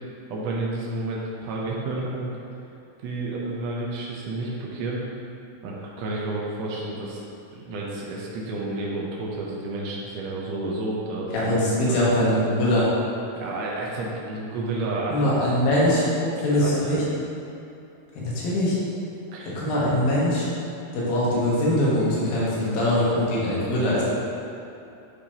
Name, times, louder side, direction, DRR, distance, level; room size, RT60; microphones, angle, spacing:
voice 1, 0.3-2.3 3.0-5.0 5.6-7.2 7.5-11.5 11.9-12.0 13.3-15.3 15.6-15.9 16.2-17.2 19.3-19.5, right 2 dB, 85° right, -4 dB, 1.5 m, -31 dB
voice 2, 11.3-12.9 15.1-16.1 16.4-17.0 18.2-18.8 19.5-20.5 20.9-24.0, left 1 dB, 85° left, -7 dB, 3.2 m, -22 dB
9.4 x 4.8 x 2.9 m, 2.8 s
omnidirectional pair, 4.0 m